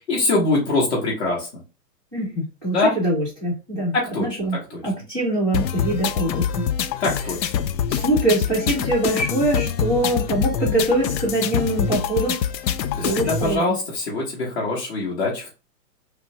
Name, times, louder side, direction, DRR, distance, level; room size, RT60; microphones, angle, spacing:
voice 1, 0.1-1.5 2.7-2.9 3.9-4.3 7.0-7.5 12.9-15.5, left 2 dB, 40° left, -4 dB, 0.9 m, -23 dB
voice 2, 2.1-4.6 4.8-6.6 7.9-12.4 13.0-13.6, right 1 dB, 10° left, -6 dB, 1.1 m, -23 dB
sound 1, 5.5-13.5, left 8 dB, 85° left, 0.5 m, -25 dB
3.0 x 2.2 x 2.6 m, 0.31 s
hypercardioid pair, 160°, 50 cm